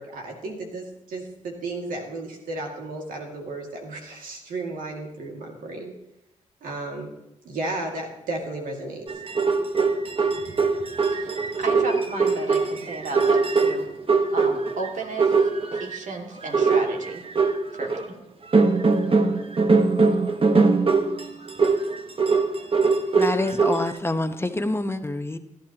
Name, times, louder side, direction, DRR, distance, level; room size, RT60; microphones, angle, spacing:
voice 1, 0.0-5.9 6.6-7.1 7.4-9.0, right 2 dB, 90° right, 1 dB, 2.2 m, -33 dB
sound 1, 9.1-14.9 15.2-16.0 16.4-18.1 18.5-23.9, right 4 dB, 40° right, 1.3 m, -21 dB
voice 2, 11.1-13.9 14.3-15.3 15.8-17.2 17.7-17.9, right 3 dB, 65° right, 2 dB, 2.3 m, -33 dB
voice 3, 23.1-25.4, left 2 dB, 15° left, 8 dB, 1.0 m, -26 dB
17.0 x 11.5 x 2.9 m, 0.87 s
supercardioid pair, 50°, 14 cm